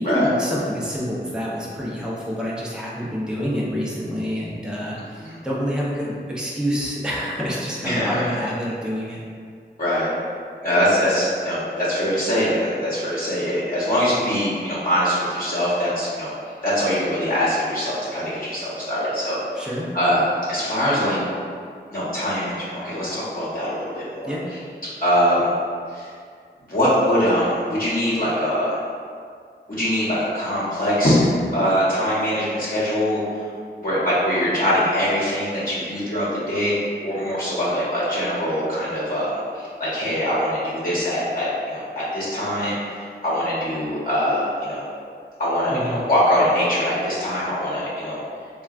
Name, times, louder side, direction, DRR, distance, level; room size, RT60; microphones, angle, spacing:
voice 1, 0.0-9.2 19.6-19.9 24.2-24.4 45.7-46.0, equal, 5° right, -6 dB, 0.5 m, -27 dB
voice 2, 7.8-8.3 9.8-10.1 10.6-16.3 16.6-19.7 19.9-20.2 20.5-21.2 21.9-24.3 25.0-25.5 25.9-26.1 26.7-28.7 29.7-31.2 31.5-33.2 33.8-36.7 37.0-44.8 45.4-48.2, equal, 50° left, -10 dB, 0.9 m, -23 dB
3.7 x 2.2 x 2.4 m, 2.1 s
wide cardioid pair, 100°, 18 cm